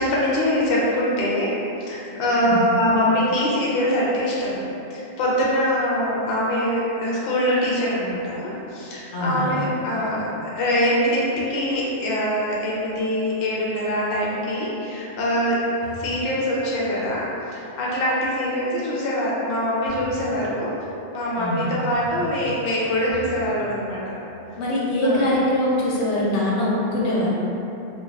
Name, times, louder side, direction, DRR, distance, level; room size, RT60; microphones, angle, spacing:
voice 1, 0.0-1.5 1.8-4.6 4.9-15.6 16.0-20.7 21.1-24.0 25.0-25.2, equal, 60° left, -6 dB, 0.7 m, -23 dB
voice 2, 9.1-9.6 21.4-21.8 24.6-27.3, left 1 dB, 85° left, -6 dB, 0.9 m, -23 dB
sound 1, 15.8-16.3 19.9-20.4 21.9-22.6 23.1-23.6, left 3 dB, 80° right, 0.9 m, -39 dB
2.4 x 2.2 x 3.1 m, 2.9 s
omnidirectional pair, 1.2 m